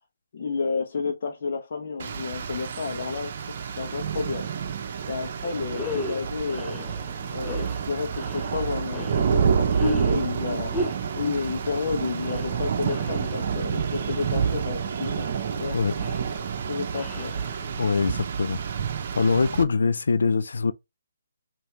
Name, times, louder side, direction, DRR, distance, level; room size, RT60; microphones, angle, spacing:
voice 1, 0.3-4.5 5.1-6.8 7.3-10.7 11.1-15.3 15.5-15.8 16.1-16.2 16.5-17.3, left 5 dB, 55° left, 0.9 m, -31 dB
Rain, 2.0-19.6, right 7 dB, 50° right, 0.7 m, -29 dB
sound 1, 5.7-18.0, left 3 dB, 10° left, 0.7 m, -37 dB
voice 2, 17.8-18.6 19.2-20.7, left 4 dB, 80° left, 0.4 m, -23 dB
5.6 x 2.7 x 3.2 m
hypercardioid pair, 150°, 0 cm